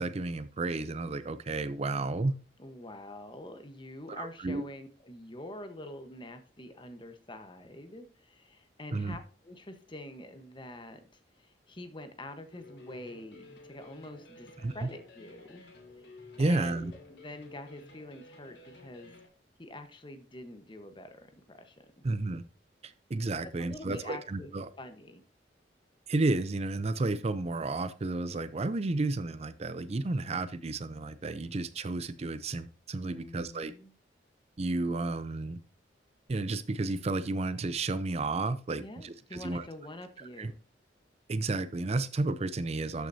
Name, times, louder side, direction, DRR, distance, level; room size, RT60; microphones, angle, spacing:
voice 1, 0.0-2.4 4.1-4.6 8.9-9.2 14.6-14.9 16.4-16.9 22.0-22.4 22.8-24.7 26.1-33.7 34.6-35.6 36.3-39.7 40.2-40.5 41.3-43.1, right 2 dB, 35° right, 13 dB, 0.5 m, -32 dB
voice 2, 2.6-15.6 16.0-16.1 16.4-19.1 19.6-21.9 23.4-24.5 24.8-25.2 33.1-33.9 38.8-40.6, left 1 dB, 25° left, 8 dB, 1.1 m, -46 dB
sound 1, 12.5-19.3, left 3 dB, 70° left, 2.6 m, -52 dB
13.0 x 6.1 x 2.7 m, 0.42 s
head